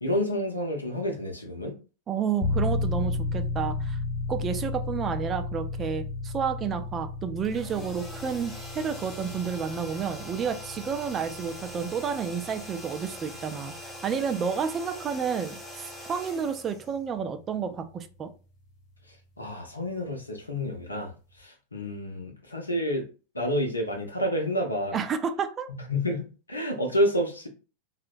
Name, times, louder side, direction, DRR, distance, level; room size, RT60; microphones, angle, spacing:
voice 1, 0.0-1.7 19.1-23.1 23.3-25.0 25.7-27.5, equal, 80° left, 3 dB, 0.6 m, -29 dB
voice 2, 2.1-4.0 4.3-18.3 24.9-25.7, right 7 dB, 25° right, 8 dB, 0.3 m, -30 dB
sound 1, 2.4-19.2, left 3 dB, 45° left, 0.9 m, -35 dB
sound 2, 7.4-17.4, left 1 dB, 10° left, 0.7 m, -43 dB
2.8 x 2.0 x 2.5 m, 0.34 s
figure-of-eight pair, 90°, 0 cm